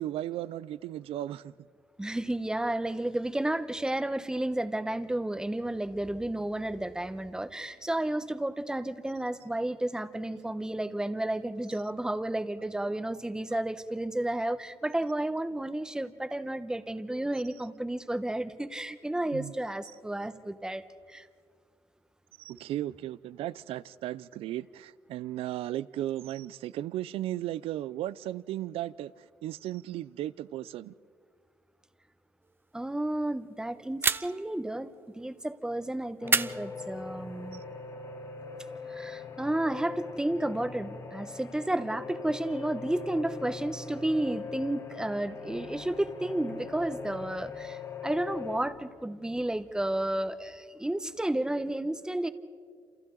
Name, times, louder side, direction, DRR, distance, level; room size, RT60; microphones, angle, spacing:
voice 1, 0.0-1.5 19.3-19.5 22.4-30.9, right 13 dB, 80° right, 0.5 m, -35 dB
voice 2, 2.0-20.8 21.1-21.3 32.7-37.6 38.9-52.3, right 1 dB, 5° right, 1.0 m, -32 dB
sound 1, 34.0-34.6 36.3-37.3, right 4 dB, 25° right, 0.5 m, -29 dB
sound 2, 36.2-48.6, left 5 dB, 40° left, 2.0 m, -41 dB
28.5 x 28.0 x 3.9 m
cardioid pair, 105°, 10 cm